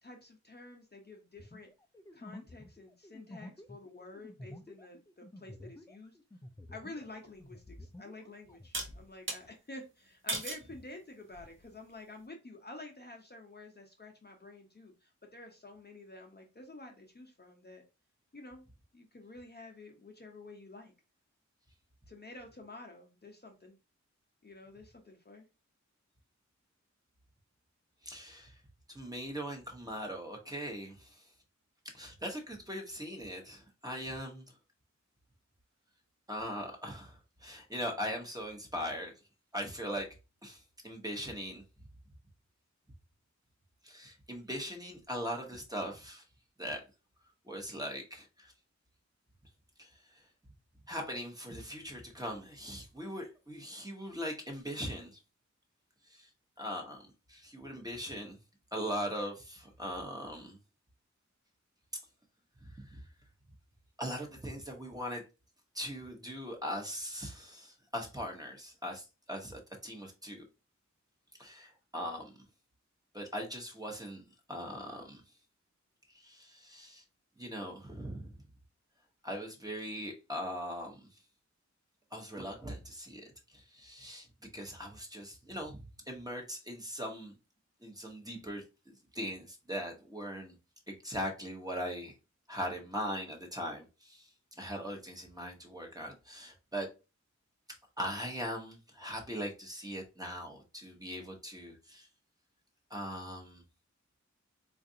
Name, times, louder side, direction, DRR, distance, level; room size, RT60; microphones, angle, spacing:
voice 1, 0.0-1.7 2.1-6.2 6.7-17.8 18.3-18.6 18.9-20.9 22.1-23.7 24.4-25.5, left 2 dB, 35° left, 0.7 m, -50 dB
sound 1, 1.4-7.1 7.4-9.0, left 1 dB, 10° left, 0.3 m, -50 dB
sound 2, 7.4-7.5 8.7-9.4 10.3-10.7 11.3-11.7, right 2 dB, 45° right, 0.7 m, -37 dB
voice 2, 28.0-28.6 28.9-31.2 31.9-34.5 36.3-39.1 39.5-40.1 40.4-41.6 43.8-46.2 46.6-46.8 47.4-48.5 49.8-49.9 50.9-55.2 56.1-56.3 56.6-57.0 57.3-58.4 58.7-60.6 62.7-63.0 64.0-65.2 65.7-70.4 71.4-72.3 73.1-74.2 74.5-75.2 76.1-77.0 77.4-78.3 79.2-81.1 82.1-84.3 84.5-85.8 86.1-87.3 87.8-88.6 89.1-90.6 90.9-92.1 92.5-94.3 94.6-96.9 98.0-102.1 102.9-103.6, equal, 15° right, 0.9 m, -40 dB
3.9 x 2.4 x 2.6 m
wide cardioid pair, 80°, 29 cm